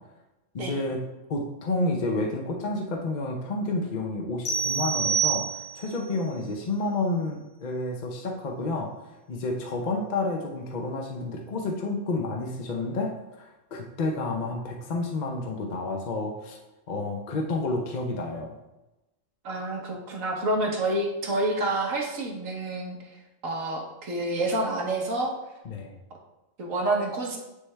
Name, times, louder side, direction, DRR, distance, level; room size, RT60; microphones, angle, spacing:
voice 1, 0.5-1.0 1.3-8.9 9.3-13.1 13.4-16.6 16.9-18.6 25.6-26.0, left 2 dB, 45° left, 1 dB, 0.6 m, -30 dB
sound 1, 4.4-6.0, right 6 dB, 90° left, 1.5 m, -27 dB
voice 2, 19.4-25.3 26.6-27.4, right 2 dB, 85° right, 0 dB, 1.5 m, -28 dB
9.5 x 3.3 x 3.3 m, 1.0 s
omnidirectional pair, 1.3 m